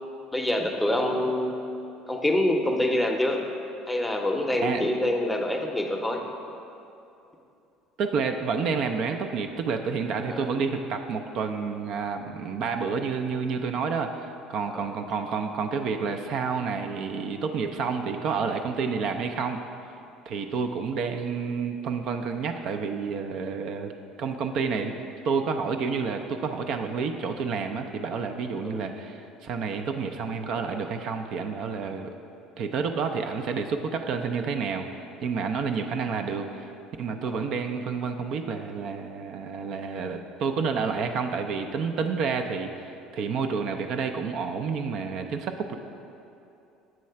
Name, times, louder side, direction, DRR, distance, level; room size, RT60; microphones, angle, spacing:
voice 1, 0.3-1.6 2.1-3.4 3.9-6.2 10.3-10.5 14.7-14.8 28.6-28.9 37.3-37.5, left 1 dB, 5° left, 2 dB, 0.6 m, -26 dB
voice 2, 8.0-19.6 20.3-23.9 24.2-25.0 25.2-32.1 32.6-36.7 37.0-45.8, right 5 dB, 60° right, 6 dB, 0.4 m, -29 dB
7.4 x 3.1 x 5.6 m, 2.7 s
supercardioid pair, 95°, 0 cm